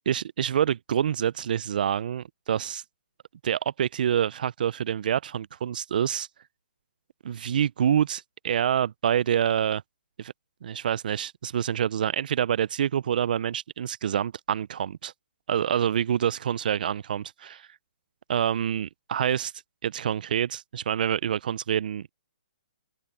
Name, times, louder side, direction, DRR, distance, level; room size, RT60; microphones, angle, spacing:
voice 1, 0.1-2.8 3.4-6.3 7.2-9.8 10.2-10.3 10.6-15.1 15.5-17.7 18.3-19.5 19.8-22.1, right 9 dB, 55° right, 0.4 m, -27 dB
open air
hypercardioid pair, 155°, 5 cm